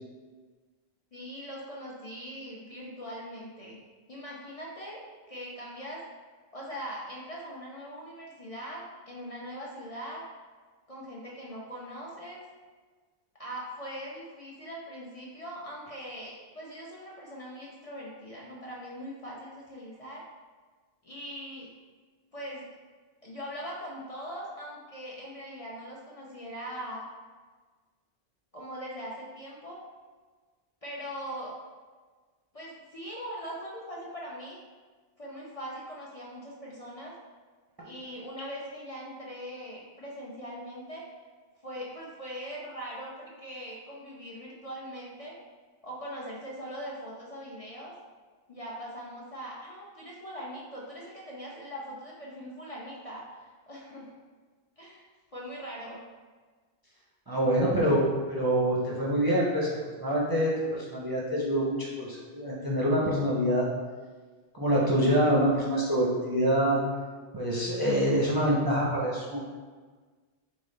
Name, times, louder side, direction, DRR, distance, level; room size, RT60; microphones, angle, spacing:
voice 1, 1.1-3.8 4.1-5.0 5.3-6.0 6.5-10.2 10.9-12.4 13.4-20.2 21.0-21.7 22.3-22.6 23.2-27.1 28.5-29.8 30.8-31.5 32.5-34.6 35.2-37.1 37.8-41.0 41.6-45.3 45.8-47.9 48.5-54.1 54.8-55.1 55.3-56.0, equal, 40° left, -4 dB, 0.6 m, -41 dB
voice 2, 57.3-63.7 64.5-66.8 67.3-69.4, equal, 25° right, -5 dB, 0.5 m, -26 dB
3.8 x 3.1 x 3.9 m, 1.4 s
omnidirectional pair, 1.1 m